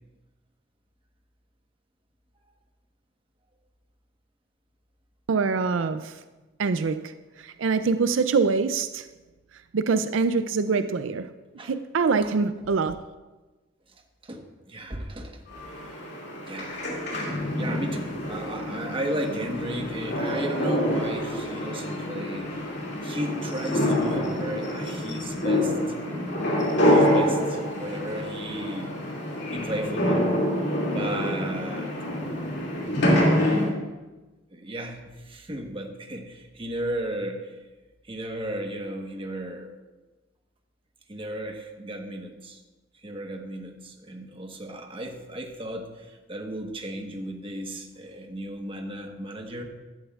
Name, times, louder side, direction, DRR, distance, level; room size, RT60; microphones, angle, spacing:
voice 1, 5.3-6.2 6.6-9.1 9.7-11.3 11.6-13.0, right 4 dB, 90° right, 0.5 m, -24 dB
voice 2, 14.2-15.6 15.9-16.0 16.5-16.9 17.5-22.5 23.0-25.8 26.8-29.0 29.5-30.3 30.9-32.5 33.1-33.3 34.5-37.5 38.1-39.7 41.1-42.6 43.0-49.6, right 1 dB, 30° right, 1.2 m, -35 dB
sound 1, 15.5-33.7, left 1 dB, 60° left, 2.5 m, -26 dB
15.5 x 11.5 x 2.4 m
head